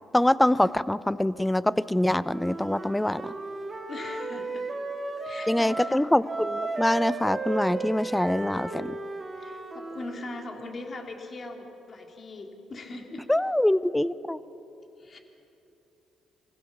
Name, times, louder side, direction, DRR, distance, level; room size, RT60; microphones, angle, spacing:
voice 1, 0.1-3.3 5.5-9.0 13.3-14.4, left 1 dB, 10° left, 17 dB, 0.6 m, -24 dB
Wind instrument woodwind instrument, 2.2-6.0 6.2-10.2, right 3 dB, 25° right, 2.4 m, -35 dB
voice 2, 3.9-4.7 5.2-6.1 9.3-13.3 15.0-15.2, left 2 dB, 45° left, 3 dB, 2.7 m, -40 dB
24.5 x 16.0 x 7.1 m, 3.0 s
supercardioid pair, 70°, 0 cm